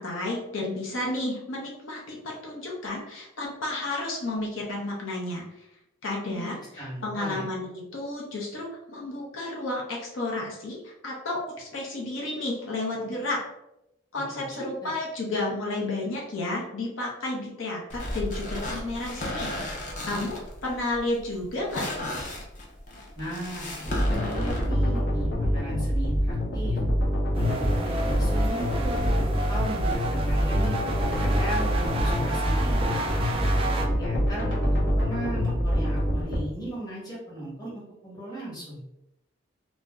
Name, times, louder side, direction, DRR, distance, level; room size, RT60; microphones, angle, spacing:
voice 1, 0.0-5.7 6.0-13.4 14.1-19.7 20.0-21.9, left 2 dB, 75° left, -3 dB, 0.7 m, -32 dB
voice 2, 6.2-7.5 14.3-14.9 23.1-23.7 24.1-26.8 27.4-28.9 29.5-30.8 31.2-33.0 33.6-34.6 35.0-38.8, right 1 dB, 20° left, -7 dB, 1.2 m, -37 dB
sound 1, 17.9-24.7, left 1 dB, 40° left, 0.6 m, -35 dB
sound 2, 23.9-36.4, equal, 60° left, 1.0 m, -25 dB
sound 3, 27.3-33.9, right 2 dB, 25° right, 0.3 m, -32 dB
2.5 x 2.0 x 3.4 m, 0.87 s
head